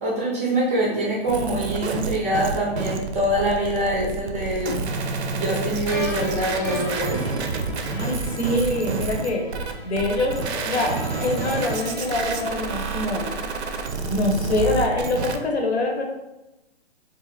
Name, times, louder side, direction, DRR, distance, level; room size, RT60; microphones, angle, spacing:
voice 1, 0.0-4.8 5.3-7.2, right 1 dB, 15° right, -4 dB, 0.4 m, -24 dB
sound 1, 1.3-15.4, right 4 dB, 90° right, 0.5 m, -29 dB
sound 2, 5.9-14.1, left 3 dB, 25° left, 0.6 m, -37 dB
voice 2, 7.9-9.4 9.8-10.9 11.2-13.3 14.1-16.0, left 2 dB, 85° left, 1 dB, 0.8 m, -24 dB
2.5 x 2.5 x 3.2 m, 0.97 s
hypercardioid pair, 145°, 32 cm